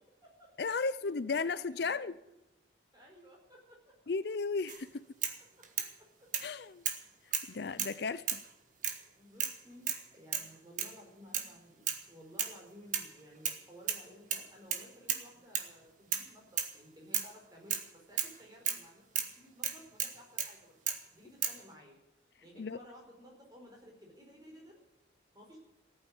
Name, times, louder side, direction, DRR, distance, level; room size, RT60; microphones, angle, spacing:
voice 1, 0.6-2.1 4.1-5.0 6.4-6.8 7.5-8.4 22.6-22.8, left 4 dB, 55° left, 0.5 m, -34 dB
voice 2, 1.3-2.1 2.9-4.0 5.6-6.3 9.2-20.8 21.1-22.0 22.4-24.8 25.3-25.6, equal, 20° right, 4.7 m, -56 dB
sound 1, 4.7-4.8 5.2-5.9 6.3-6.5 6.9-7.0 7.3-8.0 8.3-8.5 8.8-9.0 9.4-9.6 9.9-10.1 10.3-10.5 10.8-11.0 11.3-11.5 11.9-12.0 12.4-12.6 12.9-13.6 13.9-14.1 14.3-15.3 15.6-15.7 16.1-16.3 16.6-16.8 17.1-17.3 17.7-17.9 18.2-18.4 18.7-18.8 19.2-19.3 19.6-20.5 20.9-21.0 21.4-21.6, right 8 dB, 40° right, 1.5 m, -34 dB
15.0 x 8.9 x 9.4 m
head